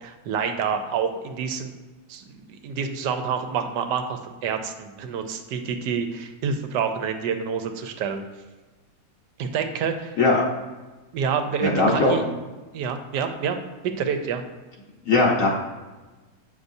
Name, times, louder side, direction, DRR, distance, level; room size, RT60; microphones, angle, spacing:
voice 1, 0.0-1.7 2.1-8.2 9.4-10.2 11.1-12.2 12.7-13.6 14.0-14.4, right 6 dB, 85° right, 7 dB, 1.3 m, -28 dB
voice 2, 11.6-12.3 15.1-15.5, left 2 dB, 55° left, -2 dB, 1.1 m, -19 dB
8.1 x 5.5 x 2.6 m, 1.2 s
omnidirectional pair, 1.8 m